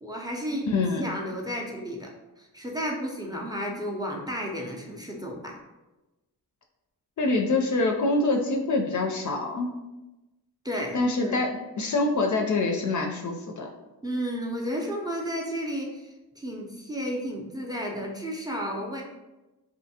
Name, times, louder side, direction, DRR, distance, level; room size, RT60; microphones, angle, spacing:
voice 1, 0.0-0.7 1.0-2.1 2.4-5.6 10.6-11.4 14.0-19.0, equal, 10° right, -1 dB, 0.5 m, -32 dB
voice 2, 0.7-1.1 7.2-9.7 10.9-13.7, left 3 dB, 45° left, 2 dB, 0.4 m, -25 dB
2.6 x 2.4 x 2.7 m, 1.1 s
supercardioid pair, 45°, 42 cm